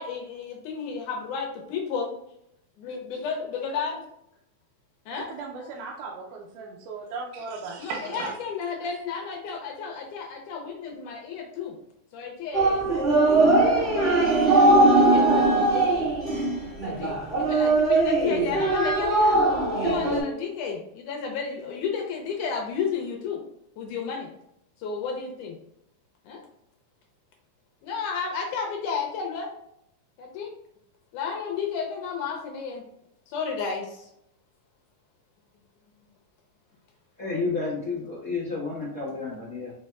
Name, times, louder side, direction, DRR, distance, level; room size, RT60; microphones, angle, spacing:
voice 1, 0.0-2.1 2.8-4.0 5.1-5.7 7.8-11.8 12.1-14.0 14.4-16.1 16.8-19.4 19.7-23.4 23.8-24.3 24.8-25.6 26.3-26.4 27.8-29.6 30.2-30.5 31.1-32.8 33.3-34.1, left 5 dB, 80° left, 1 dB, 2.0 m, -32 dB
voice 2, 5.3-8.3, right 4 dB, 80° right, -1 dB, 2.0 m, -36 dB
sound 1, 12.5-20.2, right 2 dB, 30° right, 1.3 m, -20 dB
voice 3, 37.2-39.7, left 4 dB, 60° left, -9 dB, 0.8 m, -31 dB
5.1 x 4.3 x 2.3 m, 0.78 s
omnidirectional pair, 3.9 m